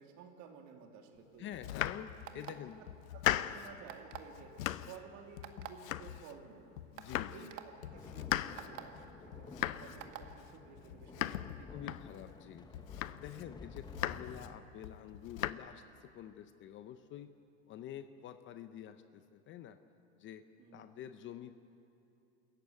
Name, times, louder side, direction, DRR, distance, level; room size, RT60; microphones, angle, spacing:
voice 1, 0.0-1.7 2.3-2.5 3.1-4.5 4.9-6.7 7.1-11.8 20.6-20.9, right 6 dB, 45° right, 3 dB, 3.0 m, -54 dB
voice 2, 1.4-2.8 6.9-7.5 11.7-12.9 13.2-17.3 17.7-19.8 20.2-20.4 20.7-21.5, left 10 dB, 30° left, 11 dB, 0.7 m, -48 dB
Domestic sounds home sounds, 1.5-2.5 2.9-3.8 4.1-5.1 5.4-6.5 6.8-7.5 7.8-12.4 12.7-13.4 13.8-14.5 14.8-15.5, left 13 dB, 85° left, 0.9 m, -39 dB
sound 1, 2.2-2.7 3.9-4.3 5.4-5.7 6.4-6.5 7.0-7.1 7.5-7.6 8.6-8.8 10.0-10.3, right 16 dB, 70° right, 1.8 m, -46 dB
sound 2, 7.9-14.6, left 4 dB, 10° left, 1.1 m, -52 dB
26.0 x 14.5 x 9.4 m, 2.8 s
supercardioid pair, 130°, 40 cm